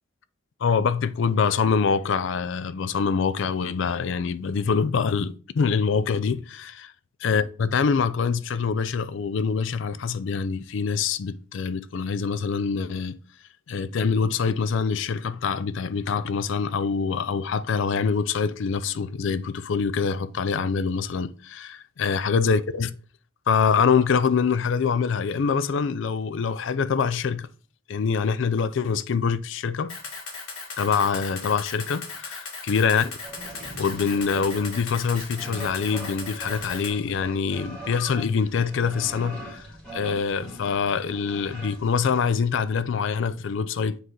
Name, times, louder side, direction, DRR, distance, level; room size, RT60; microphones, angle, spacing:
voice 1, 0.6-6.9 7.2-13.2 13.7-23.0 23.5-27.5 27.9-30.0 30.8-33.1 33.8-44.0, left 5 dB, 60° left, 0.4 m, -25 dB
Camera, 29.9-36.9, left 4 dB, 90° left, 1.6 m, -37 dB
sound 1, 33.2-42.7, right 1 dB, 5° left, 2.0 m, -41 dB
7.8 x 3.2 x 3.7 m
head